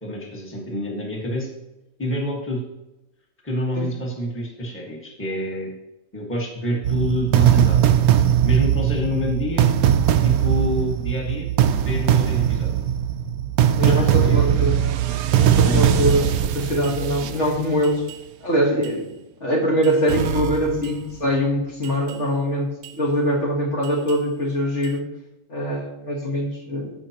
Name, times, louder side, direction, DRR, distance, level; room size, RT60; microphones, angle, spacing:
voice 1, 0.0-1.5 2.0-2.6 3.4-5.7 6.1-7.9 8.4-9.7 10.2-11.5 11.8-12.7 13.8-14.4 15.6-15.9, equal, 10° left, -2 dB, 1.5 m, -27 dB
sound 1, 6.8-18.1 18.8-18.9 19.8-21.1 21.8-22.1 22.8-22.9 23.8-24.1 24.8-24.9, right 10 dB, 75° right, 1.0 m, -20 dB
voice 2, 13.8-14.8 15.3-18.0 18.4-19.1 19.4-25.1 25.5-26.9, equal, 50° left, -1 dB, 1.8 m, -23 dB
14.0 x 5.1 x 2.9 m, 0.96 s
omnidirectional pair, 1.6 m